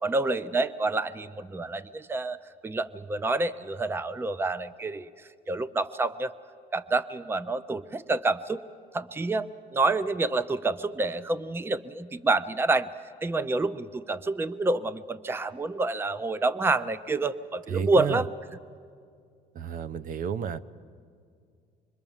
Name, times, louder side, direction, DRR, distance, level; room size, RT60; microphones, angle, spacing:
voice 1, 0.0-2.4 2.6-6.3 6.7-8.6 8.9-12.9 13.2-18.3, right 3 dB, 15° right, 16 dB, 0.6 m, -28 dB
voice 2, 17.7-18.2 19.5-20.6, right 7 dB, 55° right, 14 dB, 0.8 m, -31 dB
25.5 x 22.5 x 7.2 m, 2.2 s
cardioid pair, 110°, 17 cm